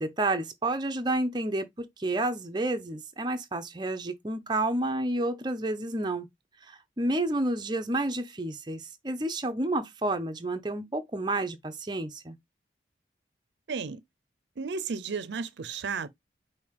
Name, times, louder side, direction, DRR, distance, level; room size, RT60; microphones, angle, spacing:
voice 1, 0.0-6.3 6.7-12.3, right 2 dB, 25° right, 0.6 m, -30 dB
voice 2, 13.7-14.0 14.6-16.1, right 5 dB, 75° right, 0.5 m, -33 dB
5.1 x 2.7 x 3.5 m
head